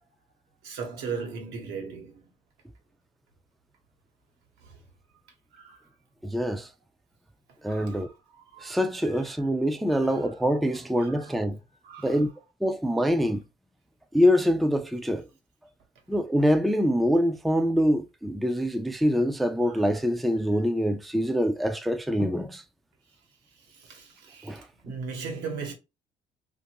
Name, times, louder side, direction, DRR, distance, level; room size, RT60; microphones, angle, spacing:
voice 1, 0.6-2.2 5.5-5.8 7.7-8.1 8.5-8.7 9.9-10.1 11.0-11.2 11.8-12.2 23.8-25.7, right 5 dB, 85° right, 1.1 m, -37 dB
voice 2, 6.2-6.7 7.6-8.1 8.6-11.6 12.0-12.3 12.6-13.4 14.1-15.3 16.1-22.6 24.4-24.7, equal, ahead, 0.3 m, -25 dB
2.5 x 2.5 x 2.9 m
cardioid pair, 110°, 17 cm